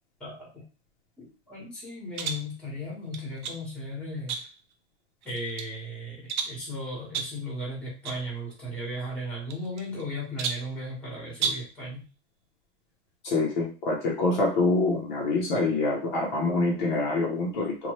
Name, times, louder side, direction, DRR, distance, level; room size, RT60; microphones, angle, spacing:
voice 1, 0.2-0.6 1.2-4.4 5.2-12.0, equal, 5° left, -5 dB, 1.0 m, -36 dB
sound 1, 2.1-2.5 3.1-3.6 4.3-4.7 5.2-5.7 6.3-6.6 7.1-7.4 8.0-8.2 8.5-8.6 9.5-10.0 10.4-10.7 11.3-11.7, right 6 dB, 40° right, 0.4 m, -33 dB
voice 2, 13.2-17.9, left 3 dB, 40° left, -1 dB, 0.7 m, -26 dB
3.0 x 2.2 x 3.0 m, 0.35 s
supercardioid pair, 160°, 37 cm